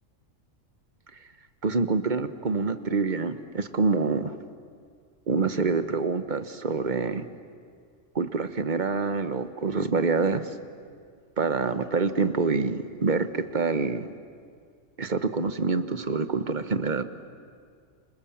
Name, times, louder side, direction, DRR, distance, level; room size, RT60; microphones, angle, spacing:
voice 1, 1.6-4.3 5.3-7.2 8.1-10.5 11.4-14.1 15.0-17.0, right 4 dB, 40° right, 11 dB, 1.2 m, -26 dB
28.5 x 26.0 x 7.3 m, 2.1 s
omnidirectional pair, 1.4 m